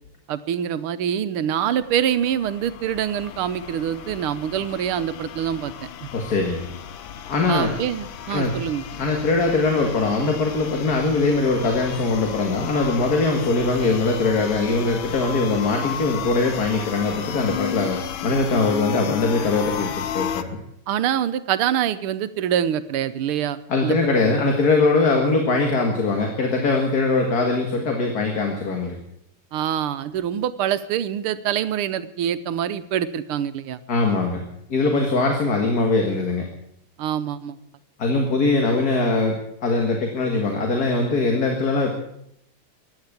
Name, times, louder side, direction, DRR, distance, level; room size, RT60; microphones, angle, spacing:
voice 1, 0.3-5.7 6.0-6.1 7.5-8.9 20.9-24.1 29.5-33.8 37.0-37.6, right 9 dB, 85° right, 13 dB, 1.8 m, -25 dB
sound 1, 1.7-20.4, left 9 dB, 70° left, 1.6 m, -34 dB
voice 2, 6.1-6.7 7.3-7.8 8.3-8.5 9.0-20.6 23.7-29.0 33.9-34.4 34.7-36.4 38.0-41.9, left 3 dB, 45° left, 3 dB, 2.3 m, -21 dB
16.0 x 10.5 x 8.5 m, 0.75 s
omnidirectional pair, 2.3 m